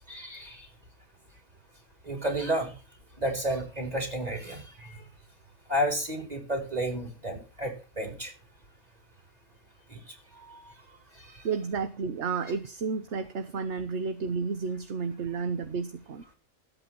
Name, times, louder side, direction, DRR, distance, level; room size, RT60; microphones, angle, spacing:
voice 1, 0.1-0.7 2.0-2.7 3.2-5.0 5.7-8.3 9.9-10.0 10.4-10.7 11.2-11.3, right 1 dB, 25° right, 4.4 m, -32 dB
voice 2, 11.4-16.3, right 5 dB, 50° right, 1.2 m, -32 dB
13.5 x 8.6 x 6.1 m
omnidirectional pair, 1.6 m